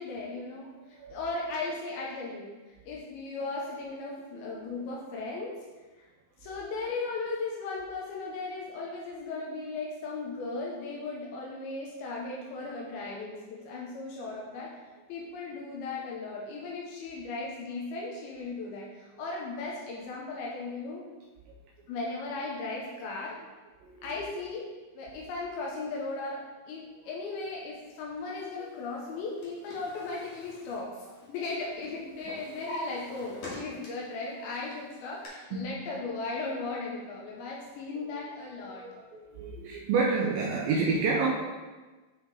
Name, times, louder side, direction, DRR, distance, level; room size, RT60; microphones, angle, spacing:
voice 1, 0.0-2.5 2.8-5.6 6.4-14.7 15.1-21.0 21.9-23.4 24.0-24.7 25.0-26.4 26.7-38.8, left 3 dB, 85° left, -3 dB, 2.7 m, -37 dB
voice 2, 4.3-4.6 23.8-24.1 28.6-28.7 35.5-35.7 38.0-38.1 38.7-41.3, right 4 dB, 80° right, -3 dB, 2.4 m, -29 dB
Drawer open or close, 29.1-31.5 31.8-34.2 34.6-35.3, left 1 dB, 55° left, 2.6 m, -44 dB
9.8 x 3.6 x 3.9 m, 1.2 s
omnidirectional pair, 4.3 m